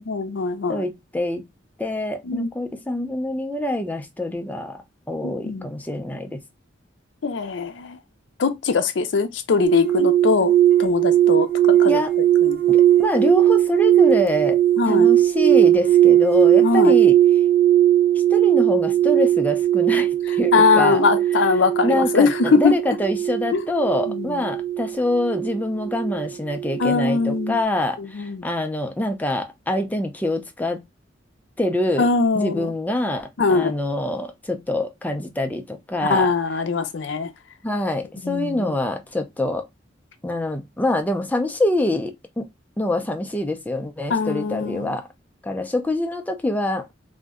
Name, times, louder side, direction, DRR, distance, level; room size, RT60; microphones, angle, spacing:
voice 1, 0.0-0.8 2.3-2.5 5.2-5.7 7.2-8.0 8.4-10.5 10.8-12.0 12.4-12.6 14.8-15.1 16.6-16.9 20.5-22.7 23.5-23.6 24.1-24.3 26.8-27.6 28.0-28.5 32.0-32.7 33.4-33.7 36.0-37.3 38.2-38.7 44.1-45.0, left 4 dB, 70° left, 0.5 m, -21 dB
voice 2, 0.7-1.4 1.8-4.8 5.1-6.4 11.8-12.1 12.7-14.6 14.9-17.2 18.3-21.0 21.8-30.8 31.6-32.1 32.3-36.3 37.6-39.7 40.2-42.5 42.8-45.1 45.4-46.9, left 1 dB, 10° left, 0.4 m, -25 dB
sound 1, 9.6-27.0 27.2-27.6, right 12 dB, 55° right, 0.4 m, -18 dB
2.6 x 2.1 x 3.5 m
head